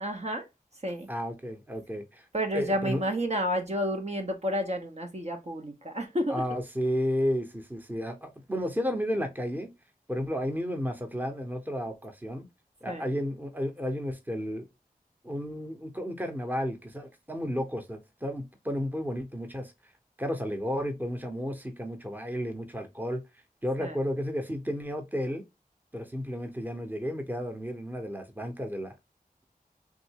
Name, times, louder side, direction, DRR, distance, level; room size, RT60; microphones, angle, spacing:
voice 1, 0.0-0.4 0.8-1.1 2.3-6.4 12.9-13.1 23.8-23.9, equal, 45° right, 0.7 m, -30 dB
voice 2, 1.1-2.2 2.5-3.0 6.3-9.7 10.1-12.4 12.8-14.7 15.2-19.7 20.2-23.2 23.6-25.4 25.9-28.9, equal, 10° right, 0.8 m, -32 dB
3.6 x 2.6 x 2.9 m
wide cardioid pair, 50°, 16 cm